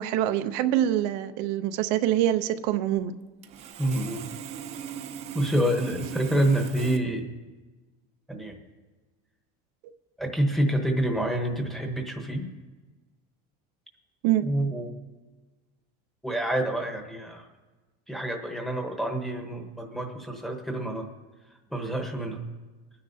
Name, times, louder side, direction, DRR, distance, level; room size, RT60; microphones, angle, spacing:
voice 1, 0.0-3.1 14.2-14.5, right 12 dB, 70° right, 9 dB, 0.6 m, -25 dB
Sawing, 3.0-3.1 3.4-7.0, right 8 dB, 30° right, 0.5 m, -39 dB
voice 2, 3.8-4.2 5.3-7.3 8.3-8.6 10.2-12.5 14.4-14.9 16.2-17.5 18.1-21.1 21.7-22.4, right 1 dB, ahead, 1 dB, 1.0 m, -27 dB
23.5 x 9.6 x 2.7 m, 1.3 s
cardioid pair, 180°, 21 cm